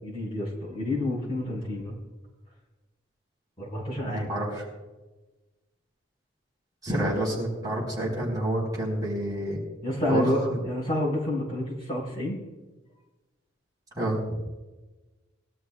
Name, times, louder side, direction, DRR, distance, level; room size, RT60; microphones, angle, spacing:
voice 1, 0.0-2.0 3.6-4.4 6.9-7.0 9.8-12.4, left 1 dB, 25° left, -4 dB, 4.9 m, -29 dB
voice 2, 4.1-4.6 6.8-9.6 10.1-10.2 10.5-10.6 13.9-14.2, right 1 dB, 20° right, -5 dB, 4.8 m, -28 dB
22.0 x 12.5 x 2.4 m, 1.2 s
head